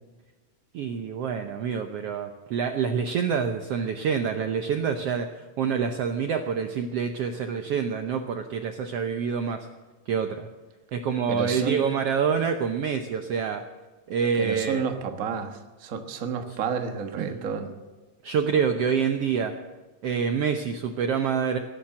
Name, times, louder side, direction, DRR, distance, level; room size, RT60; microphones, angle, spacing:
voice 1, 0.7-5.3 5.6-9.7 10.1-10.5 10.9-13.6 14.1-14.8 17.2-17.4 18.2-19.5 20.0-21.6, right 6 dB, 85° right, 6 dB, 1.3 m, -26 dB
voice 2, 11.3-11.8 14.3-17.7, right 6 dB, 60° right, 5 dB, 0.9 m, -30 dB
17.5 x 10.5 x 7.6 m, 1.2 s
omnidirectional pair, 3.9 m